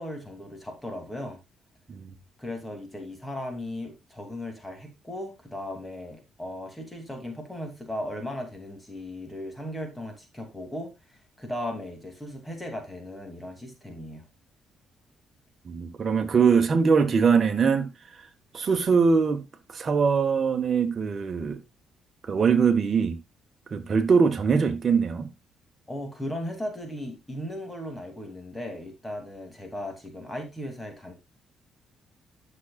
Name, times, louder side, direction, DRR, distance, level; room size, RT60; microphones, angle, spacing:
voice 1, 0.0-1.4 2.4-14.2 25.9-31.1, left 1 dB, 10° left, 2.6 m, -37 dB
voice 2, 15.6-17.9 18.5-19.4 19.7-21.6 22.2-23.2 23.7-25.3, right 5 dB, 40° right, 1.4 m, -22 dB
11.5 x 6.5 x 2.4 m
cardioid pair, 100°, 0 cm